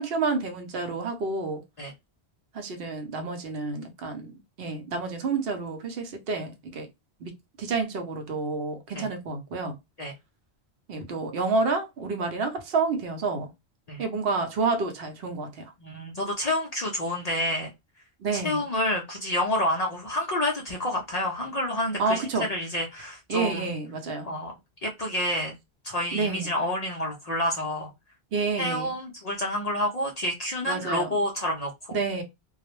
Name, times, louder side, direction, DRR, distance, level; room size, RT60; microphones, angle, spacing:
voice 1, 0.0-1.6 2.5-6.9 7.2-9.8 10.9-13.5 14.0-15.7 18.2-18.6 22.0-22.5 23.3-24.3 26.1-26.5 28.3-28.9 30.6-31.1 31.9-32.2, right 4 dB, 70° right, 0.8 m, -29 dB
voice 2, 15.8-17.7 18.3-22.2 22.5-23.7 24.2-24.5 24.8-25.5 25.8-27.9 28.6-32.0, left 1 dB, 50° left, 0.5 m, -29 dB
2.3 x 2.0 x 2.9 m
omnidirectional pair, 1.1 m